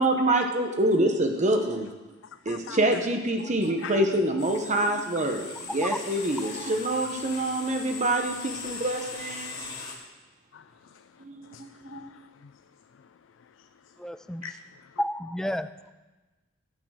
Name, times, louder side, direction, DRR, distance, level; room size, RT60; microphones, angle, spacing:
voice 1, 0.0-1.9 2.5-5.5 5.7-9.8 11.2-12.1, right 1 dB, 40° right, 4 dB, 0.9 m, -26 dB
voice 2, 2.2-2.8 3.8-4.0 10.5-11.2 11.5-12.6 12.9-13.1 13.6-13.7 14.4-14.5 14.8-15.0, left 8 dB, 75° left, 11 dB, 0.4 m, -44 dB
sound 1, 4.4-9.9, left 4 dB, 35° left, 2.7 m, -39 dB
voice 3, 14.0-14.5 15.0-15.9, left 1 dB, 5° left, 12 dB, 0.3 m, -31 dB
12.0 x 8.6 x 6.3 m, 1.2 s
head